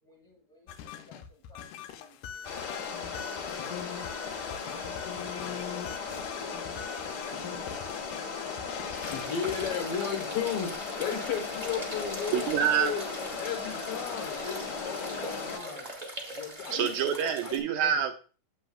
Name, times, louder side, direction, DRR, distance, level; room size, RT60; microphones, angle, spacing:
voice 1, 0.0-5.0 11.0-11.2 11.9-12.6 13.1-13.5 14.1-14.5 15.1-16.0 16.6-16.9, left 1 dB, ahead, 0 dB, 1.2 m, -52 dB
sound 1, 0.7-9.8, left 9 dB, 85° left, 2.1 m, -42 dB
sound 2, 2.4-15.6, left 5 dB, 40° left, 2.0 m, -37 dB
sound 3, 8.9-17.6, right 1 dB, 35° right, 0.6 m, -42 dB
voice 2, 9.1-13.1 13.4-15.9 16.3-16.9 17.4-18.0, left 7 dB, 60° left, 1 dB, 1.9 m, -35 dB
voice 3, 12.3-12.9 16.7-18.2, right 9 dB, 80° right, 6 dB, 1.8 m, -27 dB
8.1 x 7.7 x 2.3 m, 0.37 s
omnidirectional pair, 3.5 m